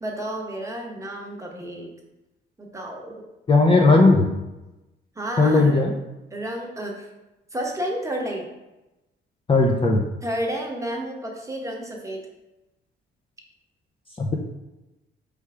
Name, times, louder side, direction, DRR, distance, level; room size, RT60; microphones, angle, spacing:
voice 1, 0.0-1.9 2.6-3.1 5.2-5.8 6.3-7.1 7.5-8.5 10.2-12.2, right 1 dB, 15° right, -1 dB, 1.0 m, -31 dB
voice 2, 3.5-4.3 5.4-5.9 9.5-10.0 14.2-14.3, left 3 dB, 25° left, 1 dB, 0.5 m, -17 dB
3.4 x 3.1 x 4.7 m, 1.0 s
cardioid pair, 90°, 20 cm